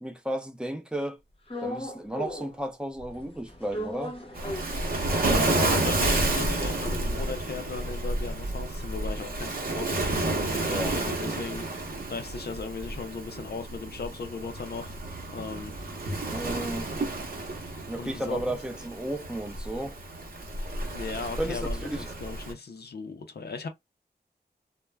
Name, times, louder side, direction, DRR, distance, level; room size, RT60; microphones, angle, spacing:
voice 1, 0.0-1.2 1.6-4.2 10.6-11.0 16.3-16.9 17.9-20.0 21.4-22.1, right 1 dB, 5° right, 0.6 m, -33 dB
sound 1, 1.5-2.7 3.0-5.6 6.0-6.1 6.2-10.7 11.1-15.1, left 1 dB, 30° left, 0.8 m, -41 dB
Waves surf, 4.3-22.5, right 2 dB, 55° right, 0.8 m, -30 dB
voice 2, 5.1-15.0 15.2-15.7 18.0-18.6 20.9-23.7, left 4 dB, 65° left, 0.5 m, -37 dB
2.3 x 2.1 x 3.2 m
wide cardioid pair, 95°, 18 cm